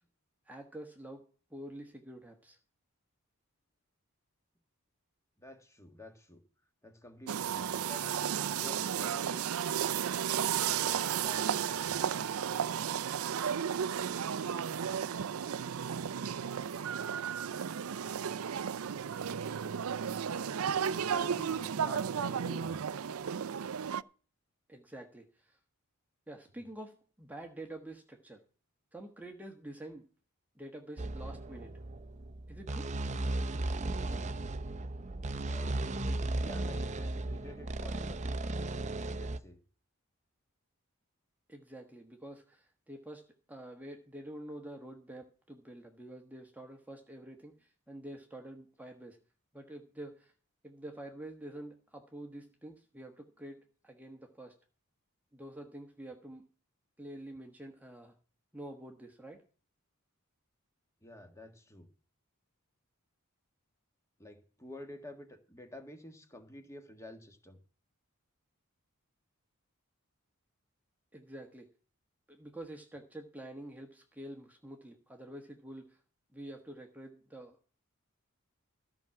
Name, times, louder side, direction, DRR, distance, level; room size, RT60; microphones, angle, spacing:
voice 1, 0.5-2.6 24.7-25.6 26.3-28.4 28.9-30.1 30.6-31.8 32.5-32.9 41.5-49.2 49.5-50.3 50.6-54.5 55.3-56.5 57.0-58.1 58.5-59.4 71.1-71.7 72.3-76.0 76.3-77.6, right 1 dB, 5° right, 3 dB, 1.2 m, -47 dB
voice 2, 5.4-6.4 6.8-9.5 10.6-12.0 20.6-22.8 26.5-26.6 35.4-35.8 36.4-38.2 39.0-39.6 61.0-61.9 64.2-67.6, left 1 dB, 15° left, 6 dB, 1.6 m, -50 dB
sound 1, 7.3-24.0, right 8 dB, 75° right, 0.5 m, -33 dB
sound 2, 31.0-39.4, right 2 dB, 30° right, 0.7 m, -36 dB
14.0 x 6.0 x 7.6 m, 0.39 s
head